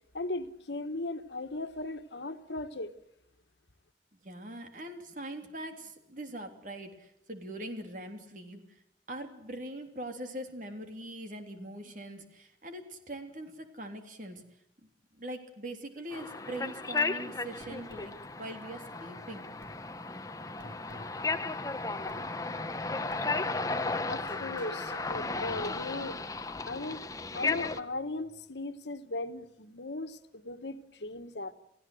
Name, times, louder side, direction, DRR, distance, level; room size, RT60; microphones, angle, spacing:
voice 1, 0.1-2.9 24.1-26.2 26.6-27.0 27.3-31.5, left 2 dB, 80° left, 9 dB, 1.5 m, -37 dB
voice 2, 4.2-8.8 9.1-14.4 15.1-19.5, right 1 dB, 45° right, 5 dB, 3.3 m, -42 dB
sound 1, 16.1-27.8, left 3 dB, 20° left, 0.9 m, -35 dB
sound 2, 17.6-18.1 19.6-19.8 20.6-21.1 22.1-22.3 23.1-23.3 24.3-25.1, equal, 90° right, 4.3 m, -49 dB
29.0 x 16.5 x 7.9 m, 0.81 s
head